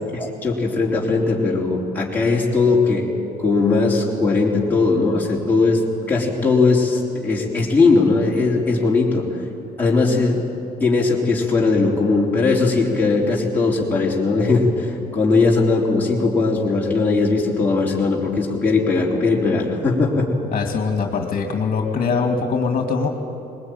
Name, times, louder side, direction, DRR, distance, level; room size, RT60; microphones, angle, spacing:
voice 1, 0.1-3.1 3.4-5.8 6.1-9.3 9.8-10.4 10.8-20.3, left 3 dB, 10° left, -4 dB, 3.7 m, -19 dB
voice 2, 20.5-23.1, left 5 dB, 45° left, 3 dB, 2.3 m, -22 dB
21.0 x 19.5 x 9.4 m, 2.8 s
cardioid pair, 110°, 17 cm